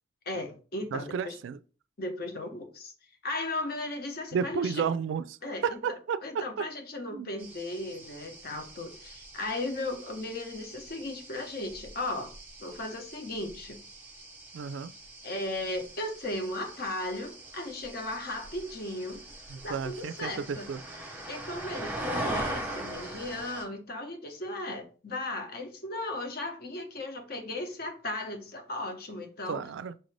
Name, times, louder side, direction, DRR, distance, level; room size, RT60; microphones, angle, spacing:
voice 1, 0.3-1.4 2.0-2.9 3.2-4.9 5.4-5.8 6.2-12.3 12.6-13.8 15.2-19.2 19.6-20.7 21.2-29.6, left 2 dB, 50° left, 0.8 m, -36 dB
voice 2, 0.9-1.6 4.3-6.7 7.1-7.3 14.5-14.9 19.5-20.8 29.5-29.9, right 6 dB, 75° right, 0.3 m, -32 dB
sound 1, 7.4-23.6, right 1 dB, 10° right, 0.8 m, -41 dB
5.6 x 2.6 x 3.2 m
head